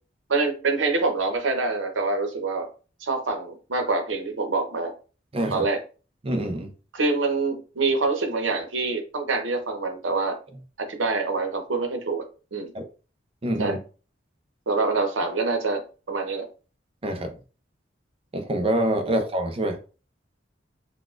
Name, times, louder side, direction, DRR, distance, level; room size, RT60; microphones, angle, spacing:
voice 1, 0.3-2.7 3.0-4.9 5.5-5.8 6.9-10.4 10.8-12.2 12.5-12.7 13.6-13.8 14.7-16.4 19.0-19.1, right 3 dB, 85° right, 0.8 m, -25 dB
voice 2, 5.3-5.6 6.2-6.7 12.7-12.9 13.4-13.8 17.0-17.3 18.3-19.8, right 1 dB, 30° right, 0.5 m, -26 dB
4.0 x 2.2 x 2.4 m
head